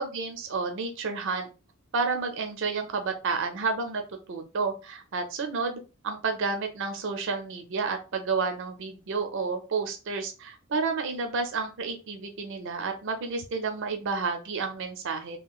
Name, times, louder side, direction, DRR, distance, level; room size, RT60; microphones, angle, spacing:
voice 1, 0.0-1.5 1.9-4.0 4.3-15.4, right 4 dB, 60° right, 5 dB, 0.5 m, -30 dB
2.9 x 2.8 x 2.3 m, 0.31 s
head